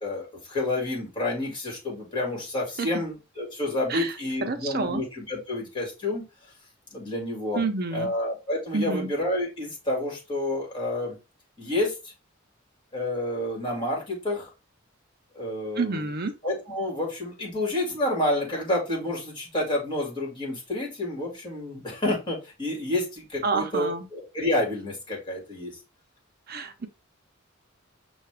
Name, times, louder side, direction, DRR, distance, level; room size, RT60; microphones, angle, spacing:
voice 1, 0.0-6.2 6.9-7.7 7.9-11.2 11.6-12.1 12.9-14.5 15.3-16.1 16.4-25.7, left 1 dB, 25° left, 2.0 m, -29 dB
voice 2, 4.4-5.0 7.5-8.1 8.7-9.1 15.8-16.3 23.4-24.1 26.5-26.9, right 3 dB, 50° right, 0.7 m, -28 dB
5.7 x 2.4 x 3.3 m
head